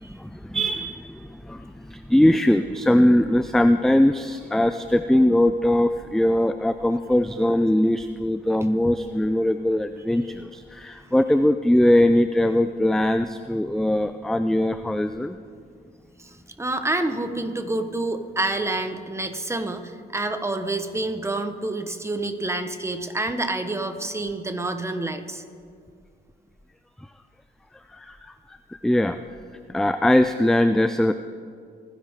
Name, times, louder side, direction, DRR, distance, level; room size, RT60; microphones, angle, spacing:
voice 1, 0.1-15.4 27.9-28.2 28.8-29.2 29.7-31.1, left 1 dB, ahead, 10 dB, 0.4 m, -21 dB
voice 2, 16.2-25.4, right 2 dB, 15° right, 7 dB, 1.2 m, -28 dB
26.0 x 10.5 x 3.7 m, 2.2 s
cardioid pair, 90°, 20 cm